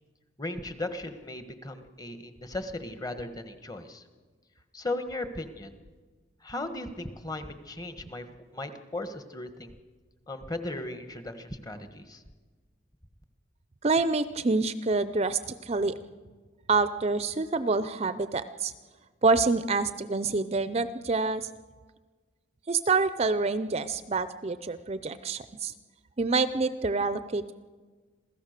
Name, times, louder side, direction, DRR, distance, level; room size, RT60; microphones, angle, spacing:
voice 1, 0.4-4.0 4.7-5.8 6.4-8.3 8.5-9.7 10.3-12.2, left 2 dB, 20° left, 9 dB, 1.4 m, -37 dB
voice 2, 13.8-16.0 16.7-18.7 19.2-21.5 22.7-25.7 26.2-27.5, right 3 dB, 35° right, 13 dB, 0.5 m, -27 dB
27.0 x 16.0 x 6.6 m, 1.4 s
head